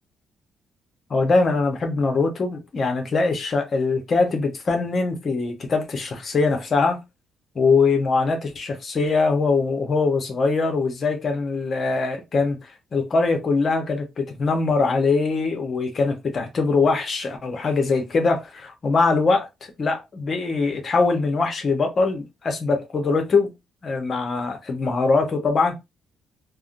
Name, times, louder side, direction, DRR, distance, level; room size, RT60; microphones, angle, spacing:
voice 1, 1.1-7.0 7.5-19.5 19.8-23.5 23.8-25.7, left 4 dB, 45° left, 0.9 m, -22 dB
3.4 x 2.1 x 2.5 m
cardioid pair, 90°, 0 cm